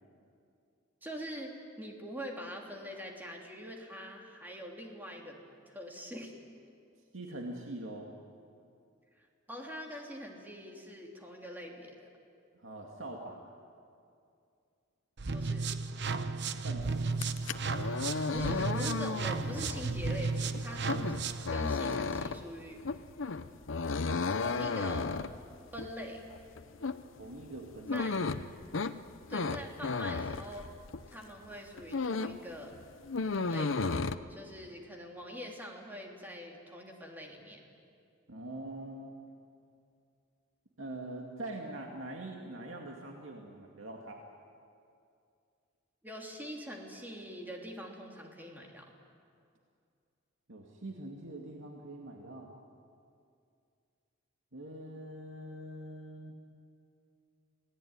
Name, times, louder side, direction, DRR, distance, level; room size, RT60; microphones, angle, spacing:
voice 1, 1.0-5.4 5.7-6.3 9.2-12.1 15.3-15.7 18.3-21.2 21.5-22.8 24.3-25.1 25.7-26.2 27.9-28.2 29.3-30.7 31.1-32.7 33.5-34.0 34.3-37.6 46.0-48.9, equal, 10° right, 0 dB, 3.2 m, -44 dB
voice 2, 7.1-8.1 12.6-13.4 16.6-17.0 27.2-28.1 38.3-39.1 40.8-44.2 50.5-52.5 54.5-56.3, right 1 dB, 75° right, 0 dB, 2.3 m, -43 dB
sound 1, 15.2-21.5, right 4 dB, 60° right, 0.9 m, -34 dB
sound 2, 17.1-31.2 31.5-32.5 32.7-34.2, left 4 dB, 70° left, 0.8 m, -34 dB
27.5 x 17.5 x 9.7 m, 2.4 s
head